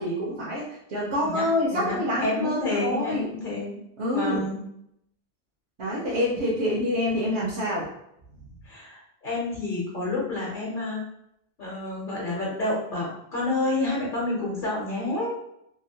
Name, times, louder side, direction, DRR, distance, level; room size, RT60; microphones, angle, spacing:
voice 1, 0.0-3.3 4.0-4.4 5.8-7.9, left 1 dB, 80° right, -7 dB, 1.1 m, -26 dB
voice 2, 1.2-3.8 4.1-4.6 8.6-11.0 11.6-15.3, left 2 dB, 55° left, -5 dB, 0.9 m, -29 dB
2.9 x 2.6 x 2.8 m, 0.78 s
omnidirectional pair, 1.1 m